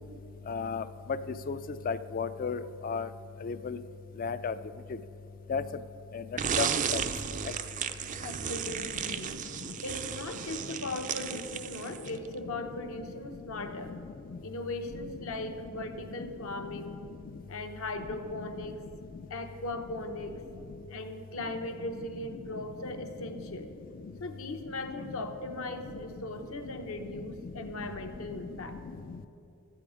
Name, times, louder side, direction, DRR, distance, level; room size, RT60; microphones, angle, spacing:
voice 1, 0.5-0.8 1.5-1.6 1.8-3.1 3.4-3.8 4.2-4.5 5.5-5.6 6.1-6.2 6.6-6.7 6.9-7.0, left 5 dB, 40° left, 13 dB, 0.3 m, -32 dB
sound 1, 6.4-12.3, right 7 dB, 35° right, 0.4 m, -34 dB
voice 2, 8.1-9.3 9.8-14.0 14.4-17.0 17.5-18.8 19.3-20.4 20.9-23.7 24.2-28.8, left 2 dB, 65° left, 6 dB, 0.9 m, -38 dB
13.0 x 8.6 x 4.9 m, 2.8 s
head